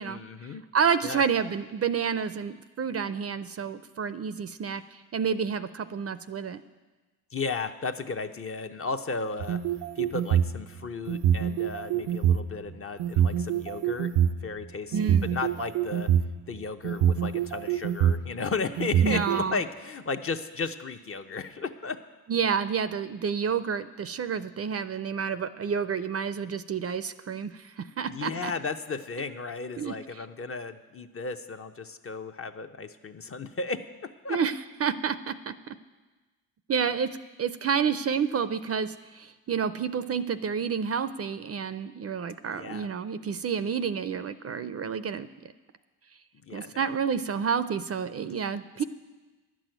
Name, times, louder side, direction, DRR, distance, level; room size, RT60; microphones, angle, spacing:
voice 1, 0.1-0.6 1.0-1.2 7.3-9.6 10.0-14.1 14.4-16.1 16.5-22.0 28.1-34.4 42.5-42.9 46.4-46.9, left 4 dB, 35° left, 7 dB, 0.7 m, -34 dB
voice 2, 0.7-6.6 14.9-15.3 19.0-19.6 22.3-28.5 29.8-29.9 34.3-34.5 34.8-35.7 36.7-37.1 37.4-45.3 46.5-48.8, right 6 dB, 40° right, 13 dB, 0.5 m, -29 dB
sound 1, 9.4-10.5 11.1-12.4 13.0-14.3 14.9-16.3 16.8-18.2 18.8-19.4, right 9 dB, 85° right, 0.6 m, -24 dB
11.5 x 6.2 x 9.1 m, 1.2 s
cardioid pair, 75°, 39 cm